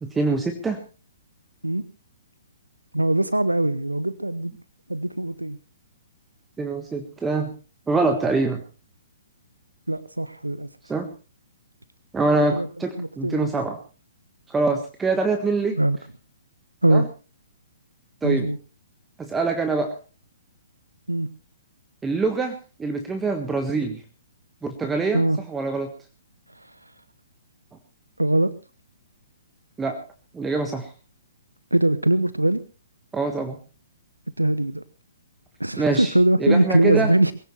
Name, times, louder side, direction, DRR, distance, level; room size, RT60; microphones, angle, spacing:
voice 1, 0.0-0.8 6.6-7.5 7.9-8.6 10.9-11.1 12.1-13.8 14.5-15.8 16.9-17.0 18.2-18.5 19.2-19.9 22.0-24.0 24.6-25.9 29.8-30.0 30.3-30.9 33.1-33.6 35.8-36.1 36.4-37.1, right 3 dB, 10° right, 5 dB, 1.5 m, -24 dB
voice 2, 2.9-4.5 4.9-5.6 9.9-10.7 12.5-12.7 13.0-13.5 15.7-16.0 16.8-17.1 18.2-18.6 21.1-21.3 25.1-25.4 26.6-26.7 28.2-28.5 31.7-32.6 34.4-34.8 35.6-37.3, right 1 dB, 85° right, 16 dB, 0.7 m, -21 dB
21.5 x 16.0 x 3.2 m, 0.33 s
figure-of-eight pair, 120°, 0 cm